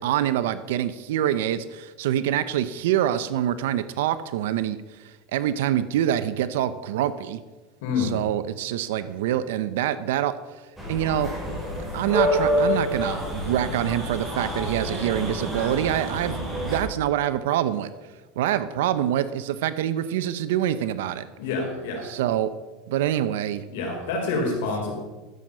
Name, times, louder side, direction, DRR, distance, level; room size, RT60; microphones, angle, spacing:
voice 1, 0.0-7.4 8.0-10.6 10.9-11.3 11.9-17.9 18.4-21.3 22.0-22.5 22.9-23.6 24.3-24.6, right 11 dB, 85° right, 13 dB, 0.7 m, -25 dB
voice 2, 7.8-8.1 21.4-22.0 23.7-24.9, left 4 dB, 80° left, 0 dB, 4.1 m, -27 dB
sound 1, 10.8-16.8, equal, 10° right, 4.8 m, -27 dB
13.5 x 7.7 x 5.5 m, 1.2 s
supercardioid pair, 135°, 0 cm